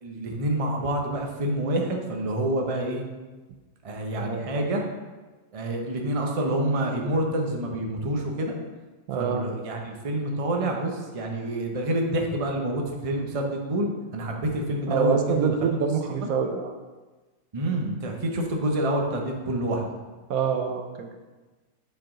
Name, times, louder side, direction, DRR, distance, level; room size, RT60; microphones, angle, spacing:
voice 1, 0.0-3.0 3.8-4.8 5.5-8.5 9.1-15.6 16.1-16.3 17.5-19.9, right 1 dB, 30° right, 1 dB, 0.7 m, -27 dB
voice 2, 4.2-4.6 9.1-9.4 14.9-16.7 20.3-21.2, right 6 dB, 75° right, 5 dB, 1.1 m, -26 dB
7.7 x 4.6 x 3.8 m, 1.3 s
omnidirectional pair, 1.6 m